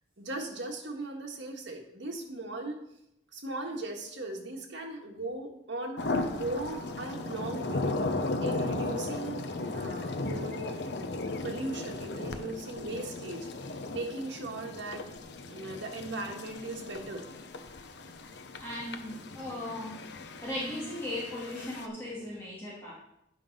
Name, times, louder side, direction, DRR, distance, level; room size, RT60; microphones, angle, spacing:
voice 1, 0.2-2.8 3.3-7.8 8.4-9.4 9.7-13.5 13.9-15.0 15.5-17.2 22.2-22.3, right 2 dB, 80° right, 1 dB, 1.6 m, -38 dB
sound 1, 6.0-21.9, left 2 dB, 70° left, 0.7 m, -36 dB
voice 2, 18.6-19.9 20.2-22.9, left 1 dB, 15° left, -8 dB, 2.7 m, -37 dB
9.0 x 5.5 x 5.3 m, 0.80 s
head